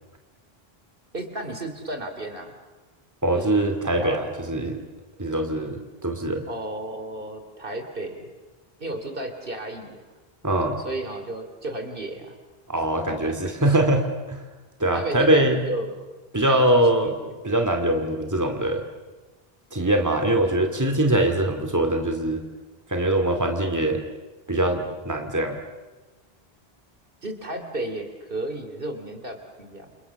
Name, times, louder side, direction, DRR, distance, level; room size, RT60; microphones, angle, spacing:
voice 1, 1.1-2.5 3.3-4.2 6.5-8.3 8.8-10.0 10.8-12.4 13.1-13.8 14.9-15.9 16.5-17.4 27.2-29.9, right 1 dB, 60° right, 6 dB, 3.2 m, -33 dB
voice 2, 3.2-4.8 5.2-6.4 10.4-10.8 12.7-14.4 14.8-15.6 16.3-17.1 17.4-18.8 19.7-22.4 22.9-24.0 24.5-25.6, right 1 dB, 15° right, 4 dB, 2.4 m, -22 dB
29.0 x 28.5 x 7.1 m, 1.2 s
omnidirectional pair, 1.0 m